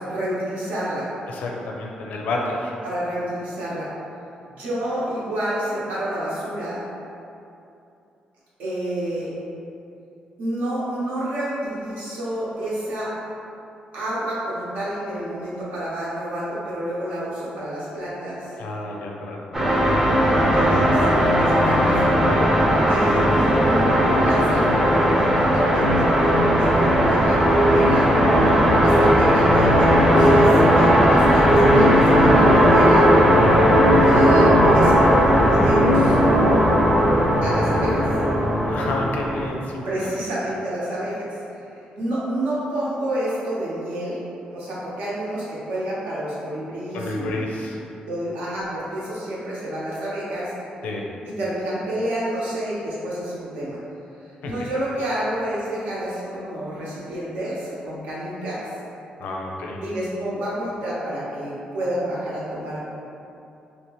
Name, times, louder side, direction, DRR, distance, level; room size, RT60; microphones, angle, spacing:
voice 1, 0.1-1.1 2.8-3.9 4.6-6.8 8.6-9.3 10.4-13.1 13.9-18.5 20.0-22.0 22.9-28.1 28.8-33.1 34.0-36.2 37.4-38.0 39.8-41.4 41.7-44.2 44.5-47.5 48.1-50.5 51.2-53.8 54.4-58.7 59.8-62.8, right 1 dB, 80° right, -8 dB, 1.0 m, -29 dB
voice 2, 1.3-2.7 18.6-19.8 22.4-22.6 28.4-29.0 38.7-40.1 46.9-47.8 50.8-51.0 54.4-54.5 59.2-59.8, left 2 dB, 80° left, -1 dB, 0.5 m, -30 dB
sound 1, 19.5-39.5, equal, 15° right, 0.5 m, -17 dB
2.9 x 2.9 x 3.0 m, 2.7 s
cardioid pair, 155°, 3 cm